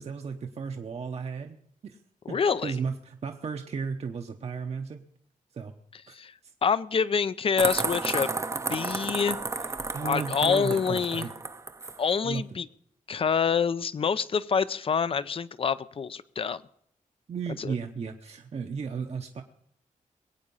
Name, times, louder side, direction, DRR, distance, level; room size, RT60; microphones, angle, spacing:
voice 1, 0.0-1.6 1.8-2.0 2.3-5.0 5.5-5.7 6.1-6.2 9.9-11.3 12.2-12.4 17.3-19.4, right 5 dB, 50° right, 4 dB, 0.9 m, -34 dB
voice 2, 2.3-2.7 6.1-6.3 6.6-8.3 8.7-9.4 10.0-11.3 12.0-12.7 13.1-16.6 17.6-17.7, left 6 dB, 45° left, 16 dB, 0.5 m, -26 dB
sound 1, 7.6-12.0, right 3 dB, 20° right, 0.6 m, -32 dB
21.5 x 8.8 x 5.5 m, 0.69 s
wide cardioid pair, 165°, 14 cm